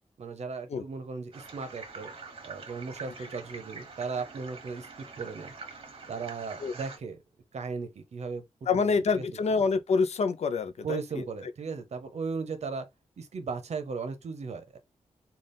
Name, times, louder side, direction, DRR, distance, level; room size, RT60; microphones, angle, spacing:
voice 1, 0.2-2.1 2.4-5.5 6.1-7.2 7.5-8.4 8.8-8.9 9.2-9.3 10.8-12.9 13.2-14.8, right 5 dB, 65° right, 0.8 m, -36 dB
sound 1, 1.3-7.0, right 4 dB, 50° right, 1.1 m, -45 dB
voice 2, 8.7-11.3, left 5 dB, 65° left, 0.5 m, -27 dB
4.0 x 2.3 x 3.4 m
wide cardioid pair, 155°, 12 cm